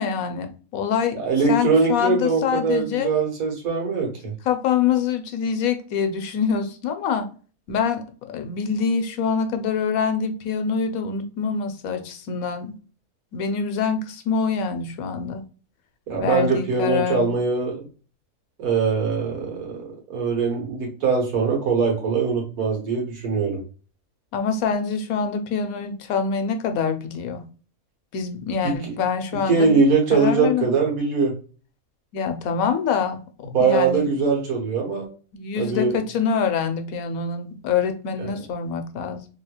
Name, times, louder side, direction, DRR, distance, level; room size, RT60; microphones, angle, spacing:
voice 1, 0.0-1.2 1.5-3.1 4.4-7.3 7.7-12.7 13.3-15.4 16.2-17.3 24.3-27.5 28.1-29.8 30.1-30.7 32.1-33.2 33.6-34.1 35.3-39.3, left 6 dB, 80° left, 1.0 m, -25 dB
voice 2, 1.1-4.3 16.1-17.8 18.6-23.6 28.6-28.9 29.5-31.3 33.5-35.1 35.6-35.9 38.2-38.3, right 4 dB, 85° right, 1.7 m, -22 dB
3.5 x 2.9 x 2.3 m
omnidirectional pair, 1.5 m